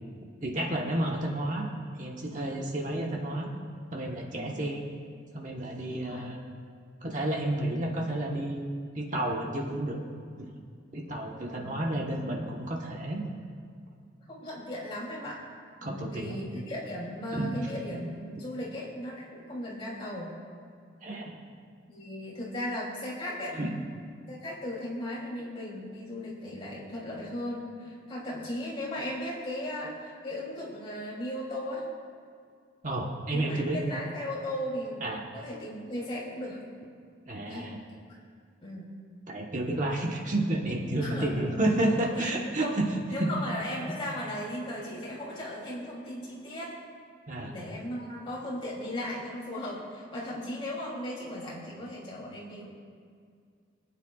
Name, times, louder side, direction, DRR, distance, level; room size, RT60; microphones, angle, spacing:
voice 1, 0.4-1.7 2.0-3.5 3.9-4.8 5.3-6.4 7.0-8.6 8.9-10.0 10.9-13.3 15.8-16.4 17.3-17.5 21.0-21.4 23.5-23.7 32.8-33.8 35.0-35.2 37.3-37.8 39.3-42.9 43.2-43.3 47.3-47.5, right 1 dB, 40° right, -1 dB, 1.2 m, -31 dB
voice 2, 4.3-4.6 5.9-6.3 11.5-12.0 14.3-15.4 15.8-20.4 21.9-23.6 24.3-31.9 33.3-36.6 37.4-37.7 38.6-38.9 41.0-41.6 42.0-42.8 43.1-46.7 47.4-52.7, left 1 dB, 30° left, -6 dB, 3.1 m, -37 dB
24.0 x 9.3 x 2.4 m, 2.2 s
head